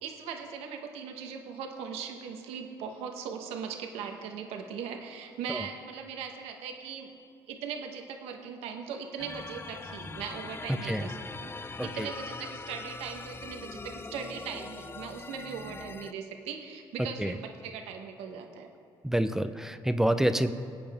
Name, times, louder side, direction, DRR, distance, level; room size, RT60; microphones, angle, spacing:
voice 1, 0.0-7.1 7.5-18.7, right 6 dB, 85° right, 4 dB, 1.3 m, -39 dB
sound 1, 9.2-16.1, left 4 dB, 25° left, 0.5 m, -42 dB
voice 2, 19.0-20.5, right 1 dB, 5° right, 10 dB, 0.8 m, -27 dB
21.5 x 8.6 x 3.6 m, 2.4 s
supercardioid pair, 75°, 10 cm